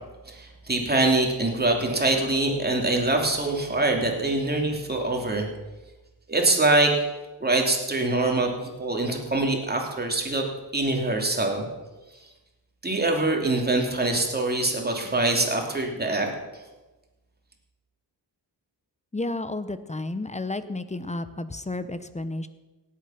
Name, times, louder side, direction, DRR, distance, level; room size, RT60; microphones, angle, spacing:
voice 1, 0.3-5.5 6.3-6.9 7.4-10.4 10.7-11.6 12.8-16.3, right 2 dB, 25° right, 1 dB, 2.9 m, -24 dB
voice 2, 19.1-22.5, left 2 dB, 15° left, 12 dB, 0.8 m, -32 dB
17.5 x 8.7 x 5.8 m, 1.1 s
cardioid pair, 85°, 41 cm